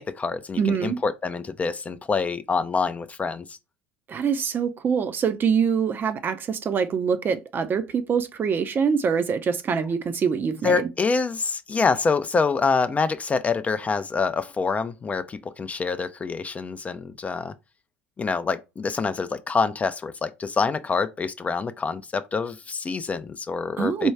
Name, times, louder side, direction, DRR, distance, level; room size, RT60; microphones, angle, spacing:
voice 1, 0.0-3.6 10.6-17.5 18.2-24.1, left 4 dB, 20° left, 0.4 m, -26 dB
voice 2, 0.6-1.0 4.1-10.9 23.8-24.1, right 6 dB, 35° right, 0.5 m, -24 dB
4.4 x 2.3 x 3.3 m
hypercardioid pair, 70°, 6 cm